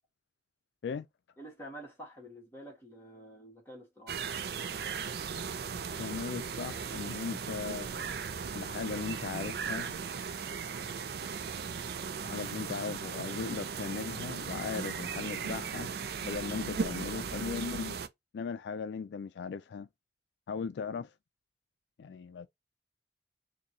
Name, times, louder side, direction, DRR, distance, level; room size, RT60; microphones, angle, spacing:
voice 1, 1.4-4.2, right 1 dB, 15° left, 1.9 m, -48 dB
sound 1, 4.1-18.1, right 6 dB, 60° right, 0.4 m, -37 dB
voice 2, 6.0-8.0 8.5-10.0 12.2-15.9 16.2-18.0 18.3-19.9 20.5-21.1 22.0-22.5, left 5 dB, 75° left, 0.3 m, -38 dB
3.9 x 2.7 x 2.8 m
head